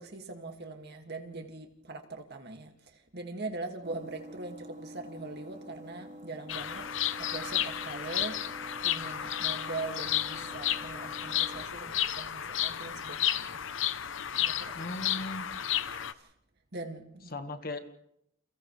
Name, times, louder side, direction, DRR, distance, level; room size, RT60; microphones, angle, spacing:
voice 1, 0.0-8.4 8.8-13.6 14.4-14.8 16.1-16.3 16.7-17.3, right 3 dB, 50° right, 4 dB, 2.3 m, -41 dB
sound 1, 3.8-11.6, equal, 35° right, 3.8 m, -47 dB
Bird vocalization bird call bird song, 6.5-16.1, left 11 dB, 65° left, 0.8 m, -32 dB
voice 2, 14.8-15.5 17.3-17.8, left 2 dB, 45° left, 7 dB, 1.7 m, -37 dB
29.5 x 29.5 x 3.3 m, 0.78 s
head